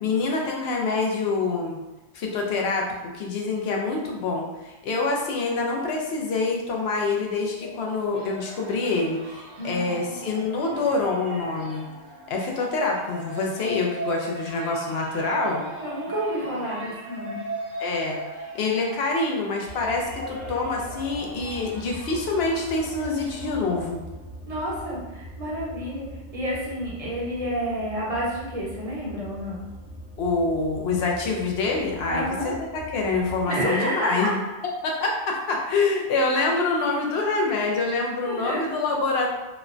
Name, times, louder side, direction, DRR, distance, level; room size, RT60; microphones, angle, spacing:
voice 1, 0.0-1.8 2.1-2.9 3.1-11.9 12.3-15.6 16.7-16.8 17.8-18.2 18.5-24.0 30.2-34.4 34.8-39.3, left 3 dB, 70° left, 0 dB, 0.8 m, -26 dB
sound 1, 7.3-24.3, right 2 dB, 85° right, 1.0 m, -39 dB
voice 2, 9.6-10.1 15.5-17.4 24.5-26.1 26.3-29.6 32.1-32.5 33.4-34.3 38.3-38.6, equal, 40° right, -6 dB, 0.7 m, -29 dB
sound 2, 19.6-33.5, right 1 dB, 40° left, 0.9 m, -42 dB
3.1 x 2.1 x 2.4 m, 1.0 s
omnidirectional pair, 1.2 m